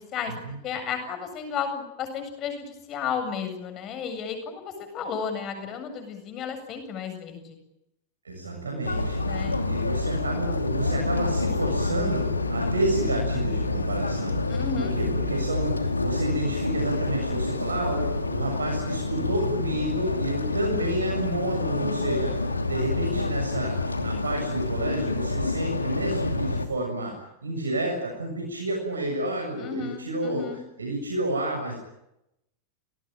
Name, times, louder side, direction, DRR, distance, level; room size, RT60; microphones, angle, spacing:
voice 1, 0.6-7.6 9.2-9.6 14.5-14.9 29.6-30.6, left 6 dB, 35° left, 8 dB, 7.7 m, -33 dB
voice 2, 8.2-9.2 9.7-14.4 14.8-31.8, right 1 dB, 75° right, 1 dB, 7.3 m, -30 dB
sound 1, 8.8-26.7, left 3 dB, 80° left, 2.7 m, -28 dB
29.5 x 19.5 x 9.2 m, 0.85 s
figure-of-eight pair, 90°, 0 cm